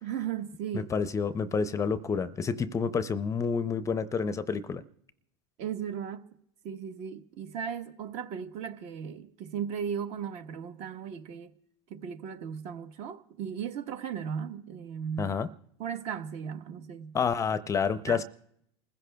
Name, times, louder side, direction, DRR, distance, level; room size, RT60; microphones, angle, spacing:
voice 1, 0.0-0.9 5.6-6.3 6.6-11.5 11.9-15.4 15.8-17.1 18.1-18.2, right 8 dB, 50° right, 1.1 m, -36 dB
voice 2, 0.7-4.8 15.2-15.5 17.1-18.2, left 6 dB, 20° left, 0.5 m, -29 dB
28.5 x 15.5 x 2.3 m
supercardioid pair, 110°, 15 cm